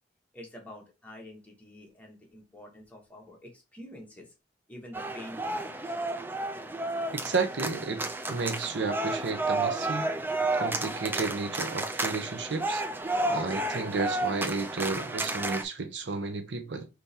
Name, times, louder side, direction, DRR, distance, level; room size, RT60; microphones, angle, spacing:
voice 1, 0.3-4.3 4.7-5.9 11.6-11.8 14.8-15.1, left 1 dB, 10° left, 1.2 m, -47 dB
sound 1, 4.9-15.6, right 2 dB, 10° right, 0.4 m, -31 dB
voice 2, 7.1-10.1 10.5-12.8 13.3-16.9, right 4 dB, 75° right, 0.7 m, -32 dB
3.6 x 2.9 x 4.1 m
head